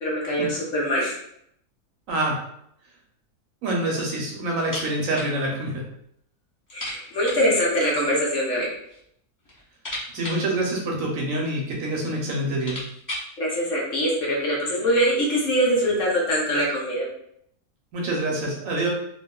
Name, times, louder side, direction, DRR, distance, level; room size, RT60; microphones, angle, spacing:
voice 1, 0.0-1.2 6.7-8.7 13.4-17.1, equal, 60° left, -4 dB, 1.0 m, -23 dB
voice 2, 3.6-5.8 10.1-12.8 17.9-18.9, right 1 dB, 65° right, -1 dB, 1.0 m, -26 dB
sound 1, 4.6-5.4 5.6-5.7 6.1-6.2 6.7-7.5 8.5-9.1 9.4-11.4 12.1-12.2 12.4-13.4, left 1 dB, 30° left, 0.3 m, -37 dB
2.9 x 2.4 x 2.2 m, 0.72 s
omnidirectional pair, 1.6 m